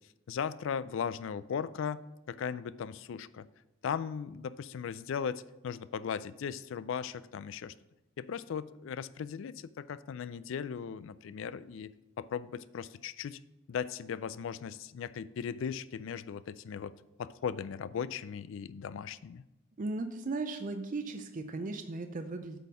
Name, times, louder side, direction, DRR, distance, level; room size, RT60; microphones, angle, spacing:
voice 1, 0.3-3.5 3.8-7.7 8.2-11.9 12.2-13.4 13.7-16.9 17.2-19.4, left 7 dB, 65° left, 16 dB, 0.3 m, -37 dB
voice 2, 19.8-22.6, right 3 dB, 40° right, 7 dB, 0.5 m, -37 dB
8.3 x 4.2 x 5.5 m, 0.93 s
head